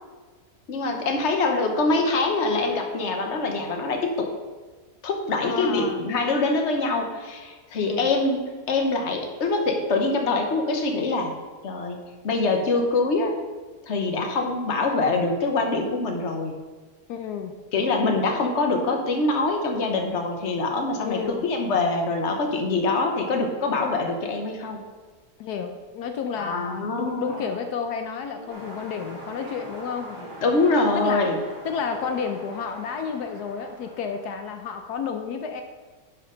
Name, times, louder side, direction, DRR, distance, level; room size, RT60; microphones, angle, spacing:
voice 1, 0.7-4.3 5.0-8.4 8.7-11.3 11.6-13.4 13.8-16.6 17.7-24.8 26.4-27.3 30.4-31.4, left 3 dB, 50° left, 3 dB, 1.3 m, -24 dB
voice 2, 5.4-6.1 7.9-8.1 17.1-17.5 21.0-21.4 25.4-30.3 30.9-31.3 31.6-35.6, left 6 dB, 80° left, 6 dB, 1.2 m, -31 dB
Male speech man speaking, 27.3-27.7 28.3-28.7 29.3-29.7 30.1-30.5 30.9-31.4 31.8-32.3, equal, 25° right, 1.9 m, -45 dB
sound 1, 28.5-34.6, right 1 dB, 60° right, 1.9 m, -43 dB
10.5 x 6.4 x 3.9 m, 1.4 s
omnidirectional pair, 1.7 m